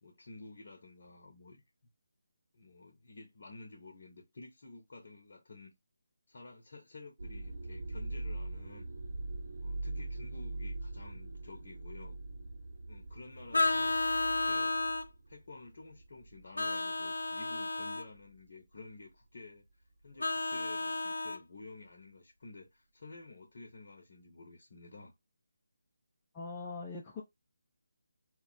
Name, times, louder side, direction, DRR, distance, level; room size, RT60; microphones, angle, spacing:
voice 1, 0.0-1.6 2.5-5.7 6.3-8.9 9.6-12.2 12.9-14.7 15.3-19.7 20.0-25.1, left 3 dB, 50° left, 0.8 m, -52 dB
sound 1, 7.2-16.6 17.0-17.4 18.1-18.4, right 2 dB, 60° right, 1.0 m, -42 dB
Vehicle horn car horn honking, 13.5-15.1 16.6-18.1 20.2-21.4, left 2 dB, 75° left, 0.4 m, -32 dB
voice 2, 26.3-27.2, left 4 dB, 15° left, 0.5 m, -41 dB
2.3 x 2.0 x 3.8 m
figure-of-eight pair, 150°, 0 cm